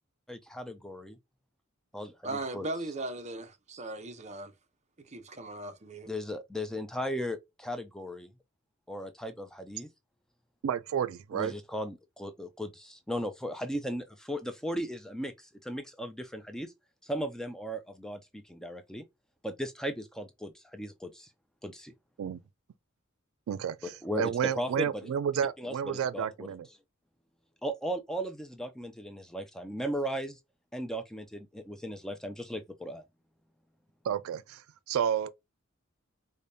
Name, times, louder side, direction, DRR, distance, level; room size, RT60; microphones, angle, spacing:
voice 1, 0.3-1.2 1.9-2.7 6.1-8.3 8.9-9.9 11.3-16.7 17.0-19.0 19.4-21.3 21.6-21.9 23.8-25.1 25.6-26.3 27.6-30.4 30.7-33.0, equal, 5° left, 0.3 m, -37 dB
voice 2, 2.2-4.5 5.0-6.1, right 2 dB, 35° right, 0.6 m, -38 dB
voice 3, 10.6-11.5 22.2-22.4 23.5-26.7 34.0-35.3, right 8 dB, 80° right, 0.3 m, -31 dB
4.9 x 2.2 x 2.6 m
head